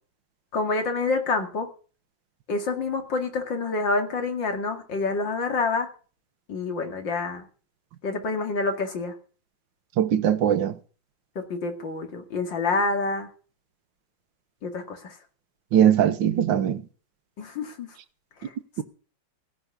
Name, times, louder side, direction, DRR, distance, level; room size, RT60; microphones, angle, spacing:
voice 1, 0.5-1.7 2.5-5.9 6.5-7.5 8.0-9.1 11.4-13.3 14.6-15.1 17.4-18.0 18.4-18.5, left 3 dB, 80° left, 3.1 m, -27 dB
voice 2, 10.0-10.7 15.7-16.8, right 10 dB, 85° right, 1.7 m, -20 dB
16.5 x 6.4 x 9.8 m
omnidirectional pair, 2.0 m